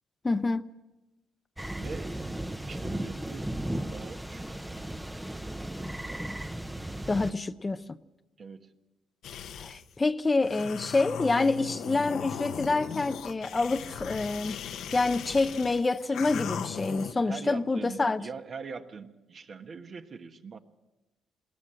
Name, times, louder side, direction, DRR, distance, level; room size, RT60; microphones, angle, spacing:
voice 1, 0.2-0.6 7.1-7.8 9.6-14.6 14.9-18.3, left 3 dB, 25° left, 0.6 m, -27 dB
sound 1, 1.6-7.3, right 1 dB, 10° right, 0.8 m, -36 dB
voice 2, 1.8-3.5 3.9-4.4 8.4-8.7 17.2-20.6, right 5 dB, 50° right, 1.4 m, -42 dB
sound 2, 9.2-9.9 10.4-17.1, left 8 dB, 75° left, 1.0 m, -38 dB
21.0 x 18.0 x 7.7 m
cardioid pair, 90°, 0 cm